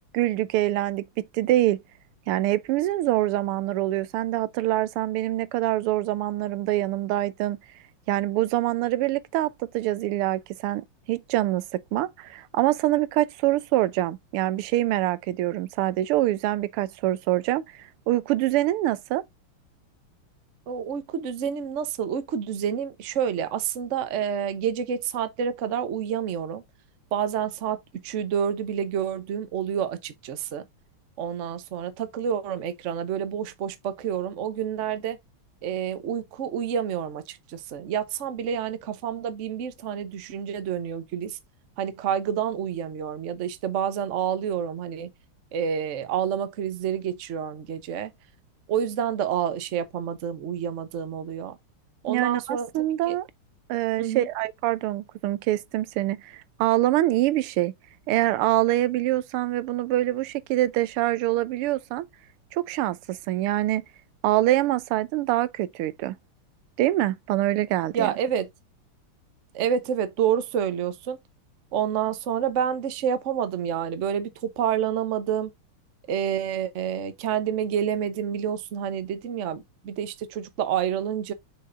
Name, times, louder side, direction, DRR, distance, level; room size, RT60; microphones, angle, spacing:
voice 1, 0.1-1.8 2.3-7.6 8.1-17.6 18.1-19.2 52.1-53.3 53.7-57.7 58.1-62.0 62.5-63.8 64.2-66.2 66.8-68.1, right 15 dB, 90° right, 1.6 m, -25 dB
voice 2, 20.7-26.6 27.1-30.6 31.2-35.2 35.6-41.4 41.8-45.1 45.5-48.1 48.7-51.6 52.0-52.7 53.1-53.2 54.0-54.3 67.9-68.5 69.5-71.2 71.7-75.5 76.1-81.3, right 8 dB, 55° right, 0.8 m, -28 dB
6.4 x 5.8 x 2.5 m
omnidirectional pair, 2.4 m